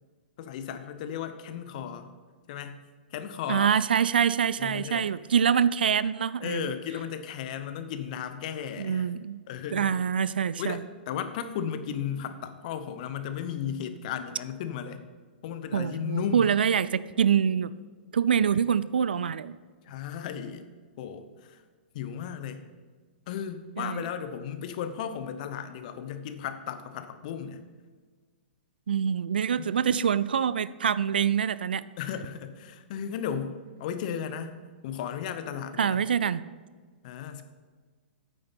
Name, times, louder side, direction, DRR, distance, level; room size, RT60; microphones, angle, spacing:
voice 1, 0.4-2.1 2.5-2.8 3.1-3.8 4.6-5.1 6.4-9.1 9.5-10.0 10.6-15.0 15.4-16.5 19.9-20.7 21.0-21.6 21.9-22.6 23.3-27.6 32.0-34.6 34.8-36.0 37.0-37.4, left 8 dB, 50° left, 10 dB, 0.9 m, -35 dB
voice 2, 3.5-6.7 8.8-9.4 9.7-10.8 15.7-17.7 18.1-19.6 23.8-24.0 28.9-31.8 35.8-36.4, right 7 dB, 70° right, 17 dB, 0.4 m, -25 dB
9.2 x 6.9 x 5.7 m, 1.5 s
figure-of-eight pair, 110°, 5 cm